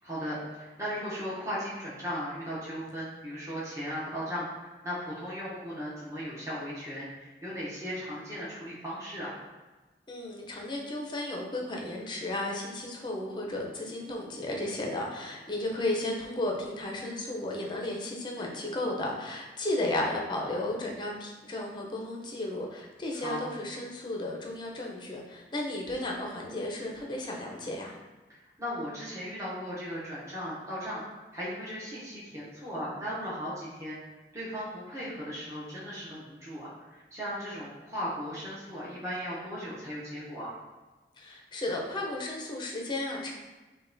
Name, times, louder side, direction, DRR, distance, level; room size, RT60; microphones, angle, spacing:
voice 1, 0.0-9.3 18.4-18.6 23.1-23.5 28.3-31.0 31.3-34.0 34.3-40.6, equal, 15° right, -8 dB, 0.6 m, -37 dB
voice 2, 10.1-27.9 41.2-43.3, left 1 dB, 25° left, -1 dB, 0.5 m, -34 dB
5.1 x 2.1 x 2.6 m, 1.2 s
head